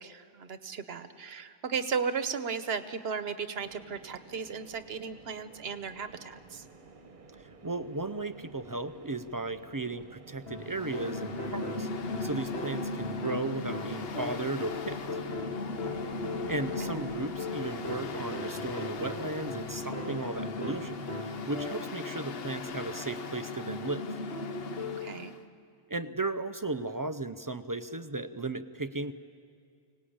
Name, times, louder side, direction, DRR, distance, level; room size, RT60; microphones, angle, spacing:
voice 1, 0.0-6.6 16.8-16.9 25.0-25.3, right 6 dB, 75° right, 11 dB, 1.1 m, -35 dB
sound 1, 3.6-21.0, right 4 dB, 55° right, 1.2 m, -50 dB
voice 2, 7.3-11.9 12.2-15.0 16.5-24.1 25.9-29.1, right 2 dB, 30° right, 11 dB, 0.4 m, -35 dB
sound 2, 10.5-22.1 24.3-25.1, left 2 dB, 85° left, 2.1 m, -40 dB
Mechanical fan, 10.5-25.4, left 3 dB, 70° left, 1.1 m, -38 dB
24.5 x 18.5 x 8.7 m, 2.3 s
omnidirectional pair, 1.1 m